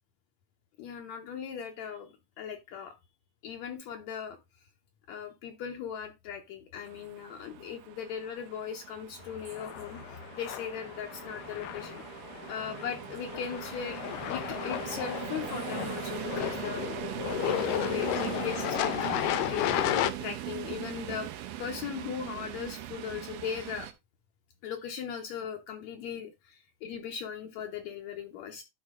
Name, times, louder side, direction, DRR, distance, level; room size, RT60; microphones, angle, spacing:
voice 1, 0.8-2.9 3.4-4.4 5.1-12.2 12.5-17.0 17.4-21.3 21.6-23.9 24.6-28.6, left 8 dB, 70° left, 4 dB, 1.9 m, -39 dB
sound 1, 6.9-23.9, right 13 dB, 85° right, 2.4 m, -40 dB
sound 2, 9.4-20.1, left 12 dB, 90° left, 2.3 m, -33 dB
11.5 x 4.5 x 3.6 m, 0.23 s
omnidirectional pair, 3.7 m